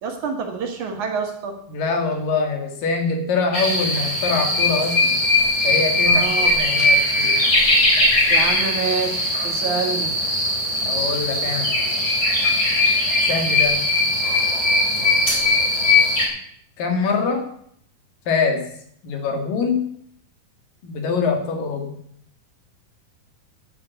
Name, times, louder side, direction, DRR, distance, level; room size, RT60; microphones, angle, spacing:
voice 1, 0.0-1.5 6.1-6.5 8.3-10.1, right 5 dB, 60° right, 3 dB, 2.8 m, -27 dB
voice 2, 1.7-5.2 5.6-7.4 10.8-11.7 13.3-13.8 16.8-17.5 18.3-18.6 19.0-19.9 20.8-21.9, left 4 dB, 70° left, 4 dB, 3.6 m, -24 dB
sound 1, 3.5-16.3, left 2 dB, 25° left, 3.6 m, -19 dB
10.0 x 8.9 x 8.1 m, 0.66 s
omnidirectional pair, 4.2 m